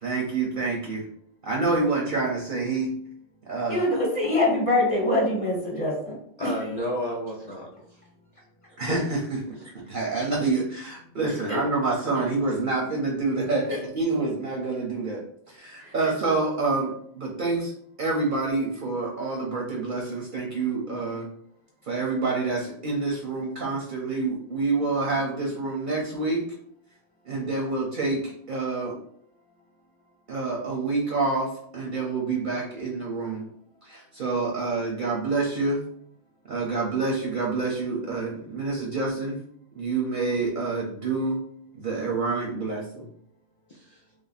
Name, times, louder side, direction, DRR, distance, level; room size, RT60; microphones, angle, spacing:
voice 1, 0.0-1.1 1.4-2.9 3.5-3.9 8.8-9.4 9.9-15.2 15.5-17.7 18.0-21.3 21.8-26.4 27.2-28.9 30.3-33.5 33.8-35.8 36.5-39.4 39.7-41.4 41.7-43.1, right 3 dB, 50° right, -1 dB, 0.8 m, -27 dB
voice 2, 3.7-6.2 11.5-11.6 13.7-13.8 15.8-15.9, left 1 dB, 25° left, -3 dB, 1.1 m, -24 dB
voice 3, 6.4-8.0 8.9-9.0 43.7-44.0, left 1 dB, 45° left, -3 dB, 0.5 m, -32 dB
3.2 x 2.6 x 4.0 m, 0.65 s
omnidirectional pair, 1.3 m